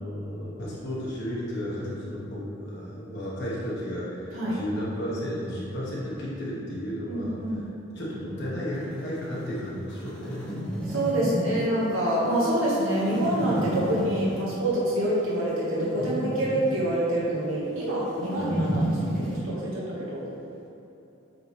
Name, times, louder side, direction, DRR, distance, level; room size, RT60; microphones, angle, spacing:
voice 1, 0.0-7.4 7.9-10.6 18.3-18.7, equal, 55° left, -7 dB, 1.2 m, -33 dB
voice 2, 7.1-7.6 10.9-20.2, right 1 dB, 75° right, -7 dB, 1.4 m, -26 dB
sound 1, 8.7-19.4, right 1 dB, 5° left, 1.1 m, -32 dB
7.8 x 3.9 x 3.3 m, 2.9 s
head